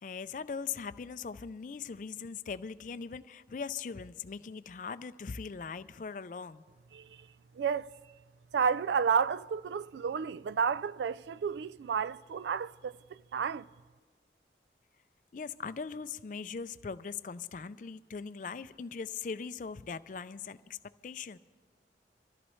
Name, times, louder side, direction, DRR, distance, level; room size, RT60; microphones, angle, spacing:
voice 1, 0.0-6.6 15.3-21.4, left 5 dB, 45° left, 0.4 m, -40 dB
voice 2, 7.5-7.9 8.5-13.0 13.3-13.7, right 6 dB, 75° right, 0.3 m, -31 dB
25.5 x 14.0 x 3.2 m
head